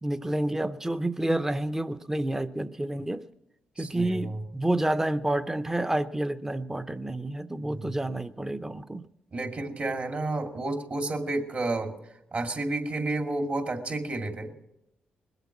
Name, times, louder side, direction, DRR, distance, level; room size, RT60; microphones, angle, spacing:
voice 1, 0.0-3.2 3.8-9.0, right 1 dB, 10° right, 11 dB, 0.7 m, -29 dB
voice 2, 3.8-4.4 7.6-8.0 9.3-11.9 12.3-14.5, right 2 dB, 50° right, 4 dB, 2.4 m, -31 dB
20.5 x 8.1 x 7.2 m, 0.84 s
supercardioid pair, 60°, 3 cm